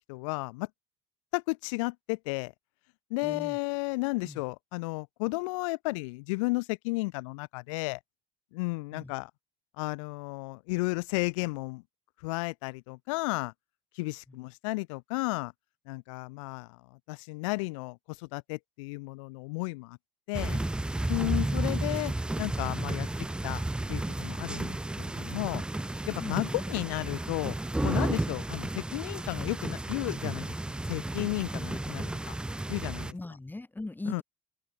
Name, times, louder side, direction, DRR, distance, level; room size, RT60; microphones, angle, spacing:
voice 1, 0.1-0.7 1.3-2.5 3.1-8.0 8.5-9.3 9.8-11.8 12.2-13.5 13.9-15.5 15.9-20.0 20.3-20.6 21.1-22.1 22.4-23.1 23.4-23.6 23.9-25.6 26.1-27.6 27.8-30.5 30.9-32.3 32.7-33.1 34.1-34.2, left 26 dB, 85° left, 1.0 m, -33 dB
voice 2, 3.2-3.6 4.2-4.4 8.9-9.1 14.3-14.4 21.1-21.5 26.2-26.4 31.5-31.7 33.1-34.2, left 2 dB, 10° left, 2.6 m, -40 dB
sound 1, 20.3-33.1, right 1 dB, 5° right, 0.4 m, -32 dB
supercardioid pair, 80°, 16 cm